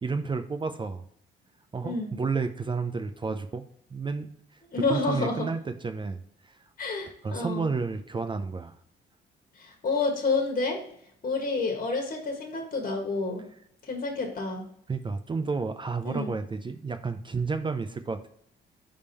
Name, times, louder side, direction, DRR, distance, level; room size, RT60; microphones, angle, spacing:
voice 1, 0.0-1.1 1.7-3.6 3.9-4.6 4.9-6.6 7.2-8.8 14.9-18.3, right 4 dB, 25° right, 8 dB, 0.5 m, -31 dB
voice 2, 1.8-2.1 4.7-5.5 6.8-7.7 9.5-10.8 11.2-13.4 13.8-14.6 16.0-16.3, left 3 dB, 45° left, 2 dB, 1.5 m, -29 dB
5.0 x 3.6 x 5.4 m, 0.69 s
cardioid pair, 90°, 20 cm